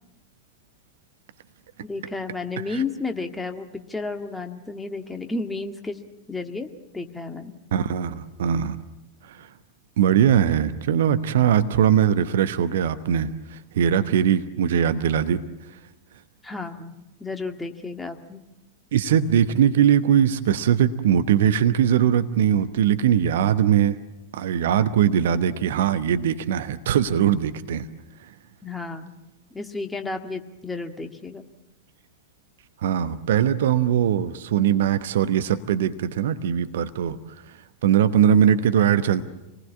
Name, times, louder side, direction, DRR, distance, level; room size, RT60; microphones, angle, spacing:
voice 1, 1.8-6.0 6.3-6.7 6.9-7.6 16.4-18.4 28.6-29.1 29.5-31.5, left 3 dB, 10° left, 5 dB, 1.9 m, -32 dB
voice 2, 7.7-8.8 9.3-9.5 10.0-15.4 18.9-24.0 24.3-27.9 32.8-37.2 37.8-39.2, right 9 dB, 60° right, 11 dB, 1.0 m, -21 dB
28.0 x 19.5 x 8.5 m, 0.98 s
figure-of-eight pair, 90°, 0 cm